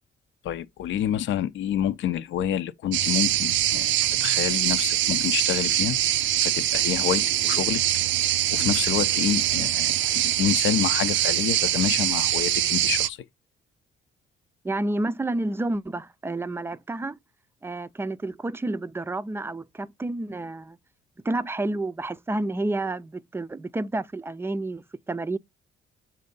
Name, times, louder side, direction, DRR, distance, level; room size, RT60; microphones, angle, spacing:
voice 1, 0.4-6.0 6.4-7.8 8.5-13.2, left 10 dB, 70° left, 0.6 m, -28 dB
sound 1, 2.9-13.1, right 13 dB, 70° right, 0.4 m, -23 dB
voice 2, 14.6-17.2 17.6-20.8 21.2-25.4, right 2 dB, 10° right, 0.4 m, -30 dB
7.5 x 2.6 x 5.2 m
cardioid pair, 90°, 20 cm